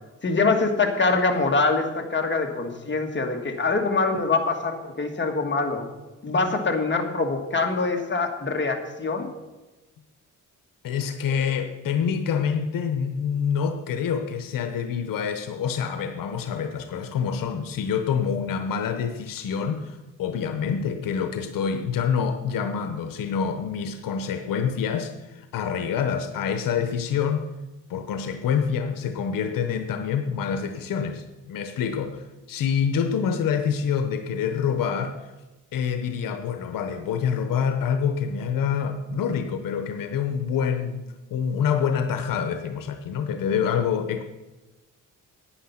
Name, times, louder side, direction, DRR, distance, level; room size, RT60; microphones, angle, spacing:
voice 1, 0.2-5.9 6.2-9.3, left 3 dB, 35° left, 3 dB, 1.8 m, -24 dB
voice 2, 10.8-27.4 27.9-35.2 35.7-41.0 41.3-44.2, left 7 dB, 90° left, 8 dB, 0.9 m, -26 dB
10.0 x 9.5 x 5.8 m, 1.1 s
cardioid pair, 90°, 32 cm